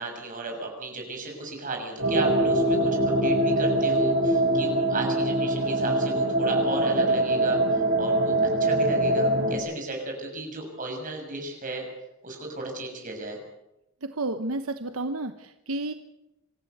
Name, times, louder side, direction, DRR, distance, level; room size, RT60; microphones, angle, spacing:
voice 1, 0.0-7.6 8.0-11.8 12.2-13.4, right 2 dB, 40° right, 2 dB, 6.5 m, -34 dB
sound 1, 2.0-9.6, right 1 dB, 55° right, 6.5 m, -23 dB
voice 2, 14.0-15.9, right 2 dB, 75° right, 8 dB, 1.1 m, -31 dB
26.0 x 14.5 x 8.1 m, 0.91 s
head